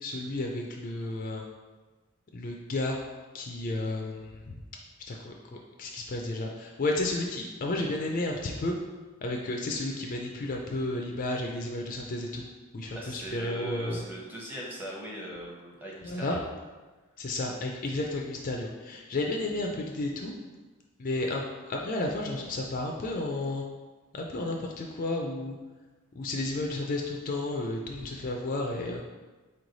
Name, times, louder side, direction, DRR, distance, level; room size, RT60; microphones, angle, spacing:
voice 1, 0.0-1.4 2.3-3.0 3.3-4.6 5.1-5.3 5.8-8.7 9.2-12.4 12.7-14.1 16.0-16.4 17.2-20.3 21.0-23.6 24.1-25.6 26.2-29.0, left 2 dB, 35° left, 1 dB, 0.4 m, -32 dB
voice 2, 12.9-16.4, equal, 10° right, -4 dB, 0.8 m, -40 dB
4.3 x 3.1 x 3.9 m, 1.3 s
head